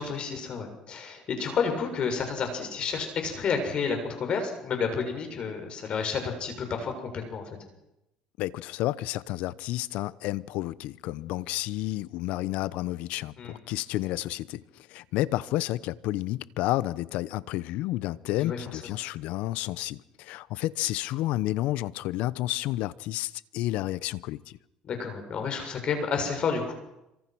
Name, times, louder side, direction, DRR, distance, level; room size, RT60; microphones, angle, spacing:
voice 1, 0.0-7.5 13.4-13.6 18.4-18.6 24.8-26.7, left 5 dB, 45° left, 7.2 m, -30 dB
voice 2, 8.4-24.6, left 16 dB, 75° left, 0.9 m, -31 dB
27.0 x 25.0 x 6.3 m
cardioid pair, 105°, 2 cm